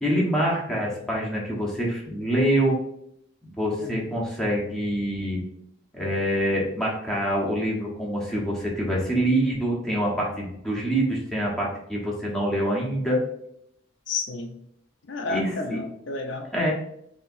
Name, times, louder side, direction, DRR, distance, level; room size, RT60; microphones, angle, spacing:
voice 1, 0.0-2.8 3.4-5.4 5.9-13.2 15.3-15.8 16.5-16.7, right 1 dB, 5° left, -4 dB, 1.0 m, -25 dB
voice 2, 14.1-14.5 15.1-16.4, left 3 dB, 65° left, 4 dB, 0.5 m, -31 dB
5.6 x 2.9 x 2.6 m, 0.74 s
head